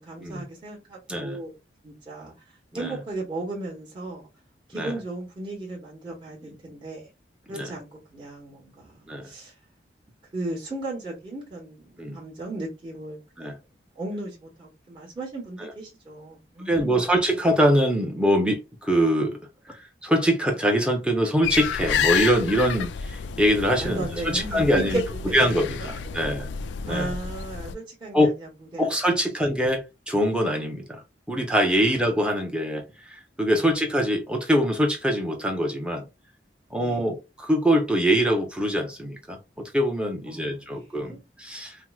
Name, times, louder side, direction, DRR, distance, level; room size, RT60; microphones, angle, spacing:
voice 1, 0.0-1.5 1.8-4.3 4.7-7.1 7.5-9.5 10.3-13.6 13.9-17.0 23.8-26.4 26.9-28.9 31.8-31.9 33.5-33.7 36.8-37.0 40.3-41.2, right 2 dB, 25° right, 1.1 m, -36 dB
voice 2, 1.1-1.4 2.7-3.0 4.7-5.0 6.5-6.6 7.5-7.7 9.1-9.3 12.0-12.2 13.4-13.6 15.6-15.7 16.7-19.4 19.7-25.0 25.3-26.5 26.8-27.1 28.1-28.4 28.8-36.1 36.7-41.8, equal, 5° right, 0.7 m, -24 dB
sound 1, 21.4-27.7, left 7 dB, 85° left, 0.3 m, -30 dB
4.5 x 2.0 x 2.3 m
head